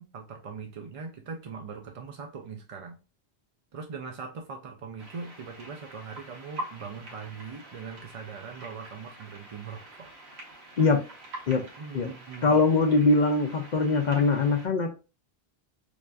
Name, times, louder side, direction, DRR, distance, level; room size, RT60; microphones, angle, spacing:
voice 1, 0.0-3.0 3.7-10.1 11.8-12.6, right 5 dB, 50° right, 0.4 m, -41 dB
sound 1, 5.0-14.7, right 1 dB, 80° right, 1.4 m, -45 dB
voice 2, 12.4-14.9, left 3 dB, 55° left, 0.5 m, -22 dB
5.0 x 2.4 x 2.4 m
omnidirectional pair, 1.1 m